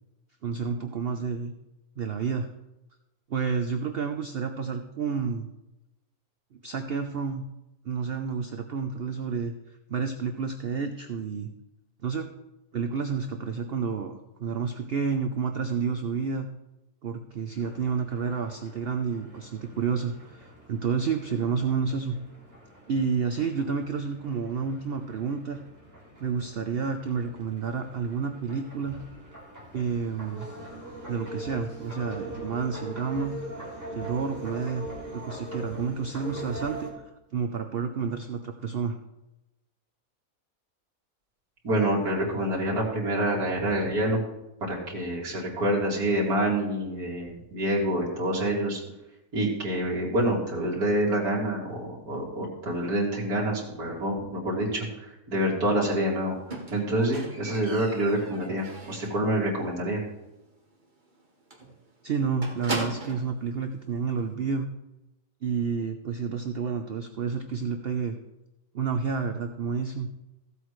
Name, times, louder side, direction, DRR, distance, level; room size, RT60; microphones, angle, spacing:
voice 1, 0.4-1.5 2.0-2.5 3.3-5.5 6.6-7.4 7.8-9.5 9.9-11.5 12.0-12.3 12.7-16.5 17.0-22.2 22.9-25.6 26.2-29.0 29.7-30.5 31.1-33.4 33.9-34.9 35.1-36.9 37.3-39.0 62.0-64.7 65.4-68.2 68.7-70.1, right 6 dB, 55° right, 6 dB, 0.7 m, -30 dB
sound 1, 17.6-36.9, equal, 10° right, 2.8 m, -42 dB
voice 2, 41.6-44.2 44.7-48.8 49.3-56.3 56.7-60.0, right 1 dB, 85° right, -4 dB, 3.0 m, -27 dB
Squeak, 56.5-59.3 59.6-60.0 60.3-60.4 60.8-60.9 61.1-61.3 61.5-63.3 64.2-64.3, right 2 dB, 30° right, 1.7 m, -37 dB
15.5 x 8.0 x 3.2 m, 0.95 s
omnidirectional pair, 1.5 m